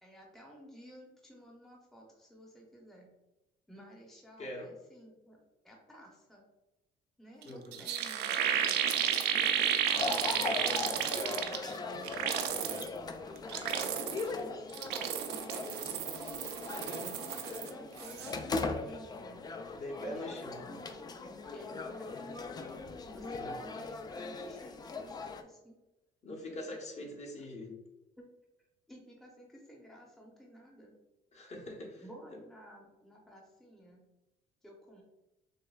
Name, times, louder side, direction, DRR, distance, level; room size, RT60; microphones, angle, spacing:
voice 1, 0.0-3.1 3.7-5.4 5.6-6.4 7.2-9.9 10.4-12.9 13.3-14.6 14.9-16.1 16.9-19.4 20.0-21.0 21.5-22.7 23.1-25.8 26.5-26.6 28.2-28.3 28.9-30.9 32.0-34.0 34.6-35.0, equal, ahead, -2 dB, 0.7 m, -54 dB
voice 2, 4.4-4.8 7.4-7.9 16.7-17.0 19.8-20.6 23.4-23.6 26.2-27.7 31.3-32.4, left 1 dB, 40° left, 0 dB, 1.0 m, -43 dB
sound 1, 7.4-7.5 7.7-11.7 12.0-12.9 13.4-14.3 14.7-17.7 18.0-18.3, right 9 dB, 80° right, 0.5 m, -32 dB
sound 2, 9.9-25.4, left 3 dB, 25° left, 0.3 m, -39 dB
6.4 x 2.2 x 2.3 m, 1.0 s
cardioid pair, 110°, 17 cm